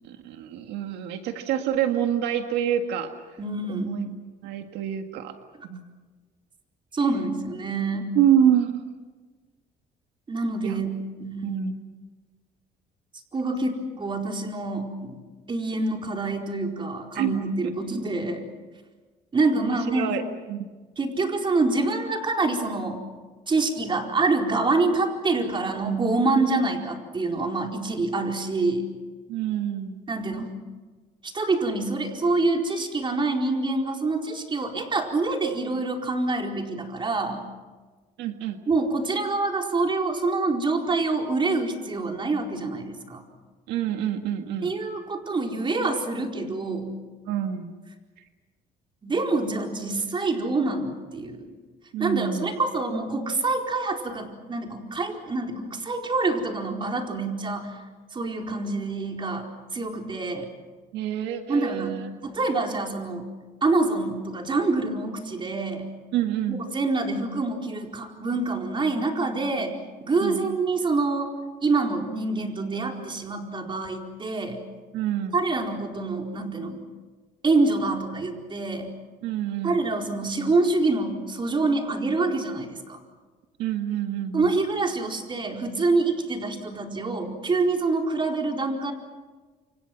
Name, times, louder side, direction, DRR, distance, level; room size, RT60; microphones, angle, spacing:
voice 1, 0.0-3.1 3.7-5.3 5.6-5.8 8.2-8.9 10.6-10.8 11.4-11.7 17.1-17.3 19.5-20.2 20.5-20.7 29.3-30.0 38.2-38.6 43.7-44.7 47.3-47.7 51.9-52.5 60.9-62.1 66.1-66.6 70.2-70.6 74.9-75.4 79.2-79.9 83.6-84.5, right 10 dB, 90° right, 6 dB, 1.8 m, -27 dB
voice 2, 3.4-3.9 6.9-8.1 10.3-10.9 11.2-11.6 13.3-15.2 15.5-18.4 19.3-20.1 21.0-23.0 23.5-28.8 30.1-30.5 31.2-37.4 38.7-43.3 44.6-46.9 49.0-51.5 52.0-57.7 58.1-59.5 59.7-60.5 61.5-63.3 63.6-65.9 66.5-71.3 71.6-74.6 75.3-76.8 77.4-78.9 79.6-83.0 84.3-88.9, right 3 dB, 30° right, 2 dB, 4.5 m, -26 dB
28.5 x 26.5 x 6.0 m, 1.3 s
cardioid pair, 110°, 17 cm